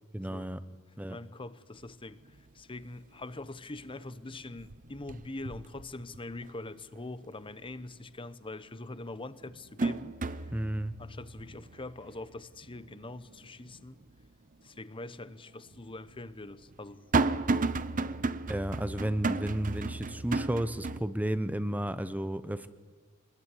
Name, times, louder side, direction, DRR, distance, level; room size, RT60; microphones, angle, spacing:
voice 1, 0.1-0.6 1.0-1.2 10.5-10.9 18.5-22.7, right 1 dB, 5° right, 0.8 m, -32 dB
voice 2, 1.1-10.6 11.0-14.0 14.6-17.1 18.0-18.2, left 2 dB, 25° left, 0.9 m, -43 dB
sound 1, 1.8-1.9 2.3-2.8 3.2-4.0 4.3-6.6 7.0-7.1 8.5-8.6 9.1-14.3 14.7-14.8 15.7-21.0, right 3 dB, 35° right, 0.7 m, -34 dB
25.0 x 21.0 x 9.9 m
head